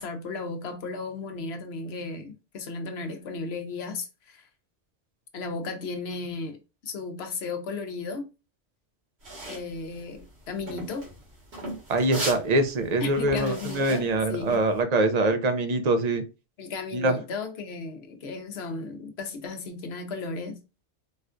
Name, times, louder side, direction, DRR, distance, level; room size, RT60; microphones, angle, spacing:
voice 1, 0.0-4.5 5.3-8.3 9.5-11.1 13.0-14.6 16.6-20.6, left 4 dB, 70° left, 0.9 m, -35 dB
sound 1, 9.2-14.8, right 1 dB, 70° right, 1.8 m, -37 dB
voice 2, 11.9-16.2 16.9-17.2, right 2 dB, 50° right, 0.5 m, -24 dB
4.2 x 2.3 x 2.4 m
omnidirectional pair, 1.2 m